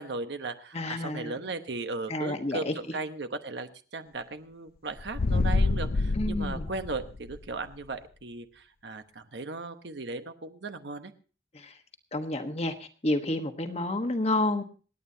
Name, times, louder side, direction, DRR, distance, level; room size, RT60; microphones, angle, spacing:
voice 1, 0.0-11.1, right 3 dB, 80° right, 9 dB, 1.0 m, -37 dB
voice 2, 0.7-1.3 2.1-2.7 6.2-6.6 12.1-12.7 13.0-14.6, left 2 dB, 35° left, 6 dB, 1.2 m, -29 dB
sound 1, 5.0-7.5, left 3 dB, 55° left, 0.5 m, -27 dB
27.0 x 9.2 x 2.7 m, 0.37 s
head